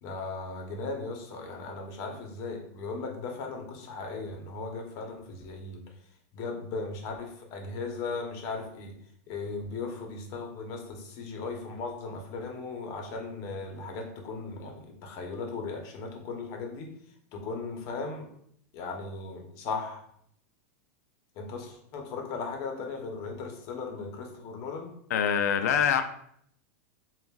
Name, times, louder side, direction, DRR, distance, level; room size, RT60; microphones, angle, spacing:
voice 1, 0.0-5.8 6.3-8.9 9.3-16.9 17.3-18.3 18.7-20.0 21.4-24.9, left 4 dB, 40° left, 2 dB, 0.9 m, -37 dB
voice 2, 25.1-26.0, left 8 dB, 85° left, 8 dB, 0.5 m, -24 dB
7.0 x 2.5 x 2.4 m, 0.69 s
supercardioid pair, 150°, 8 cm